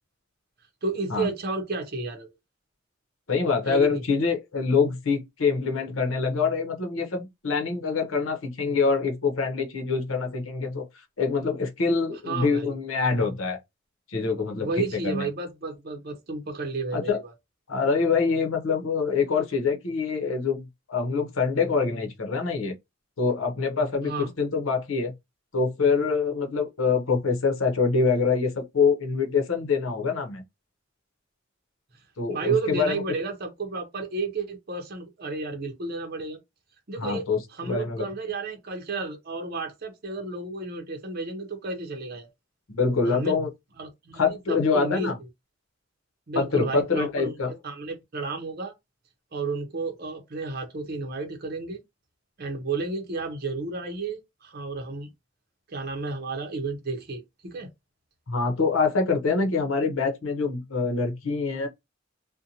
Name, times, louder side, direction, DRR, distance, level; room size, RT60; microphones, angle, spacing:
voice 1, 0.8-2.3 3.7-4.0 12.3-12.7 14.6-17.3 24.0-24.3 32.3-36.4 36.9-37.3 37.5-42.3 43.1-43.3 43.8-45.1 46.3-47.3 47.6-48.7 49.3-51.8 52.4-55.1 55.7-57.7, right 3 dB, 50° right, 0.7 m, -32 dB
voice 2, 3.3-10.9 11.2-13.6 14.1-15.3 16.9-17.2 17.7-22.7 23.2-25.1 25.5-30.4 32.2-33.0 37.0-38.1 42.7-43.5 44.2-45.2 46.3-47.5 58.3-61.7, left 4 dB, 85° left, 0.7 m, -25 dB
2.6 x 2.1 x 2.8 m
head